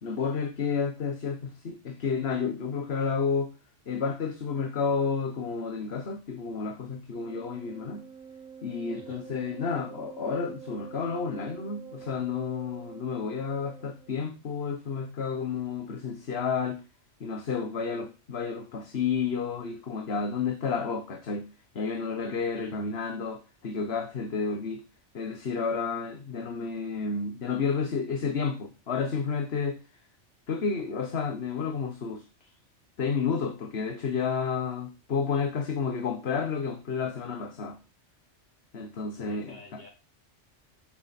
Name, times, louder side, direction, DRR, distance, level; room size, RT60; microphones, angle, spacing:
voice 1, 0.0-3.5 3.9-8.0 8.6-16.8 17.2-21.5 21.7-24.8 25.1-29.8 30.5-32.5 33.0-37.8 38.7-39.8, left 5 dB, 60° left, 1.5 m, -31 dB
Wind instrument woodwind instrument, 7.1-14.1, right 7 dB, 5° right, 2.6 m, -47 dB
voice 2, 22.5-23.0 39.2-39.9, left 1 dB, 40° left, 5.0 m, -49 dB
12.5 x 7.4 x 4.3 m
omnidirectional pair, 1.2 m